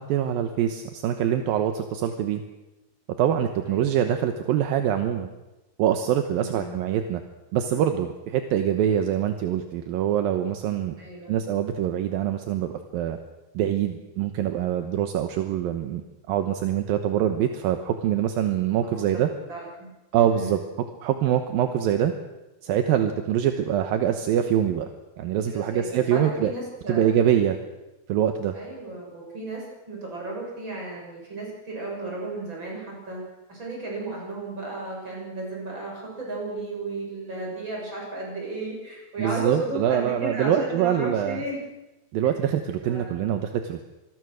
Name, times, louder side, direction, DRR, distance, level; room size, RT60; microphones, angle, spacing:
voice 1, 0.0-2.4 3.2-5.3 5.8-7.2 7.5-11.0 11.3-13.2 13.5-16.0 16.3-19.3 20.1-20.6 21.0-22.1 22.6-24.9 25.2-26.5 26.9-27.6 28.1-28.6 39.2-41.4 42.1-43.8, right 10 dB, 70° right, 7 dB, 2.4 m, -24 dB
voice 2, 6.4-6.7 11.0-11.4 18.8-19.2 19.5-19.9 20.3-20.6 25.5-27.2 28.5-33.2 33.5-41.6 42.8-43.3, right 2 dB, 25° right, -2 dB, 7.7 m, -34 dB
26.0 x 22.0 x 6.4 m, 1.0 s
omnidirectional pair, 5.0 m